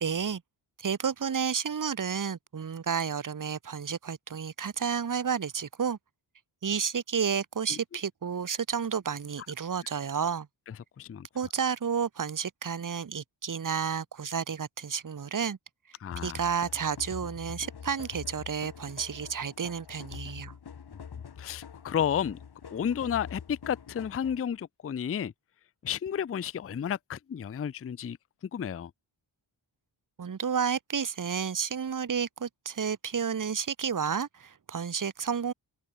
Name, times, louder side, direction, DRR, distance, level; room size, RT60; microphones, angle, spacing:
voice 1, 0.0-0.4 0.8-6.0 6.6-10.5 11.3-15.6 16.2-20.5 30.2-35.5, right 7 dB, 40° right, 0.8 m, -31 dB
voice 2, 11.0-11.3 16.0-16.4 21.4-22.4 22.7-25.3 25.8-28.2 28.5-28.9, left 8 dB, 30° left, 0.4 m, -32 dB
sound 1, 16.1-24.6, left 7 dB, 50° left, 0.9 m, -45 dB
open air
wide cardioid pair, 85°, 49 cm